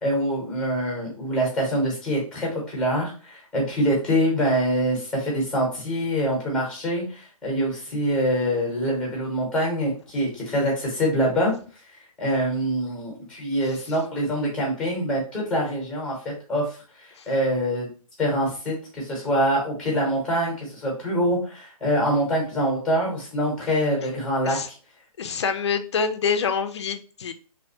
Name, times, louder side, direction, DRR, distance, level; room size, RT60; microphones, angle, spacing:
voice 1, 0.0-11.5 12.2-16.2 16.5-16.6 17.0-17.9 18.2-24.6, equal, 5° left, -1 dB, 0.9 m, -25 dB
voice 2, 25.2-27.3, left 6 dB, 45° left, 9 dB, 0.4 m, -26 dB
2.7 x 2.2 x 2.7 m, 0.38 s
hypercardioid pair, 155°, 19 cm